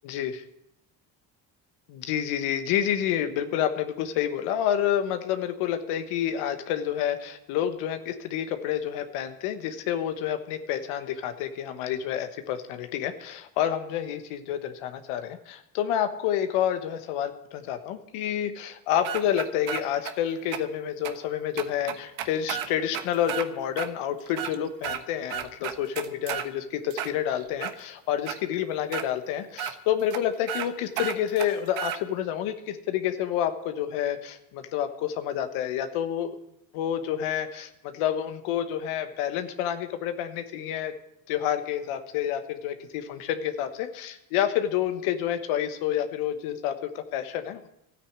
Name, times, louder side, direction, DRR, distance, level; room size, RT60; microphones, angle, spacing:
voice 1, 0.0-0.4 1.9-36.4 36.7-40.9 41.3-47.7, left 10 dB, 80° left, 8 dB, 1.3 m, -29 dB
sound 1, 19.0-20.1 20.5-20.6 21.0-21.1 21.6-23.5 23.8-23.9 24.3-25.0 25.3-26.5 26.9-27.7 28.3-28.4 28.9-29.1 29.6-29.7 30.1-30.2 30.5-30.7 31.0-32.0, right 10 dB, 70° right, 1.3 m, -32 dB
13.0 x 9.6 x 8.7 m, 0.81 s
supercardioid pair, 65°, 50 cm